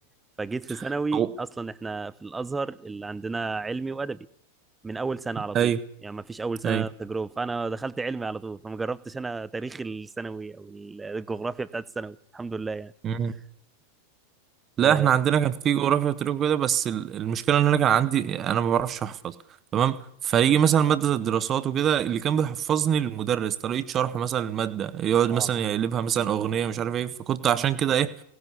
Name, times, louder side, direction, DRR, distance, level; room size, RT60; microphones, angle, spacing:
voice 1, 0.4-4.3 4.8-5.7 6.0-12.9 14.8-15.1 25.3-25.5, right 3 dB, 10° right, 0.8 m, -32 dB
voice 2, 14.8-19.3 19.7-28.1, right 9 dB, 30° right, 1.4 m, -24 dB
18.0 x 18.0 x 8.5 m
figure-of-eight pair, 90°, 0 cm